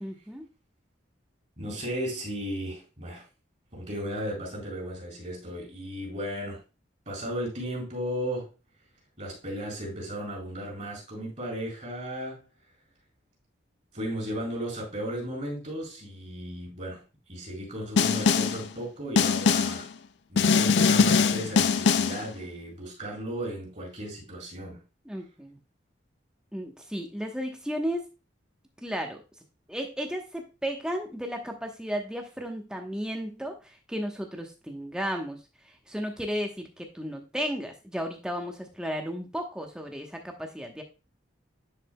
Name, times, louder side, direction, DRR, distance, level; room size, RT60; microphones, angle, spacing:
voice 1, 0.0-0.5 25.1-25.6 26.5-28.1 28.8-29.2 29.7-35.4 35.9-40.8, equal, 5° right, 1.0 m, -34 dB
voice 2, 1.6-3.2 3.7-6.6 7.1-8.5 9.2-12.4 13.9-17.0 17.3-19.9 20.3-24.8, equal, 35° right, 3.9 m, -35 dB
Snare drum, 18.0-18.6 19.2-19.8 20.4-22.2, left 5 dB, 65° left, 0.4 m, -22 dB
10.0 x 5.0 x 2.2 m
head